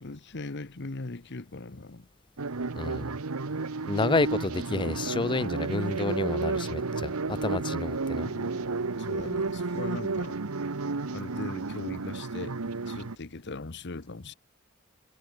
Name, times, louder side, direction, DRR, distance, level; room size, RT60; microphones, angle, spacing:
voice 1, 0.0-2.1 8.2-8.7 9.0-10.4 11.1-12.6 12.9-14.3, left 3 dB, 50° left, 1.1 m, -39 dB
sound 1, 2.4-13.2, right 3 dB, 75° right, 1.0 m, -32 dB
voice 2, 2.7-3.2 3.9-8.3, left 3 dB, 20° left, 0.5 m, -29 dB
head